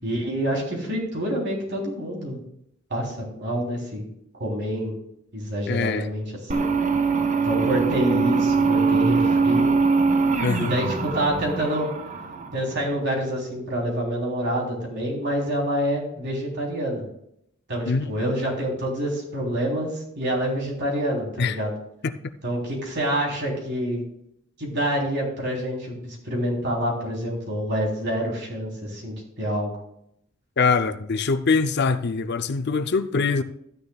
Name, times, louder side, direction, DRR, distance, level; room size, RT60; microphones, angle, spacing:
voice 1, 0.0-2.4 2.9-4.1 4.4-5.0 5.3-6.7 7.4-9.7 10.6-11.9 12.5-17.0 17.7-21.7 22.4-24.0 24.6-29.7, equal, 55° right, 3.5 m, -27 dB
voice 2, 5.7-6.1 10.4-10.7 17.8-18.1 21.4-21.6 22.0-22.1 30.6-33.4, left 4 dB, 55° left, 0.6 m, -23 dB
sound 1, 6.5-12.9, right 4 dB, 35° right, 0.8 m, -22 dB
13.0 x 9.9 x 2.3 m
head